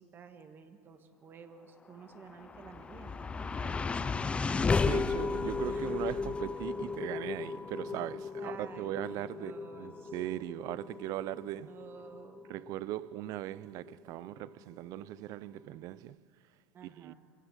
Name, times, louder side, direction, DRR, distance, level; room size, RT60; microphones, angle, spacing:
voice 1, 0.0-4.7 5.7-5.9 8.4-10.1 11.5-12.4 16.7-17.1, right 6 dB, 30° right, 1.7 m, -52 dB
sound 1, 2.1-14.5, left 4 dB, 15° left, 0.6 m, -35 dB
voice 2, 4.8-11.8 12.5-16.2 17.0-17.1, right 15 dB, 50° right, 0.5 m, -39 dB
26.5 x 17.0 x 7.3 m
supercardioid pair, 135°, 8 cm